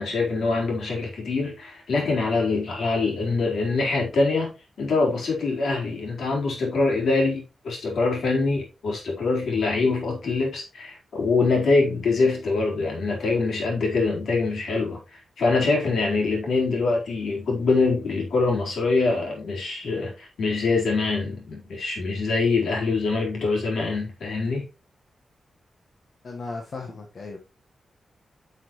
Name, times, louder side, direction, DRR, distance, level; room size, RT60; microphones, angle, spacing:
voice 1, 0.0-24.6, left 3 dB, 75° left, 4.0 m, -24 dB
voice 2, 26.2-27.4, left 3 dB, 45° left, 1.4 m, -36 dB
9.9 x 5.8 x 3.1 m
wide cardioid pair, 170°, 0 cm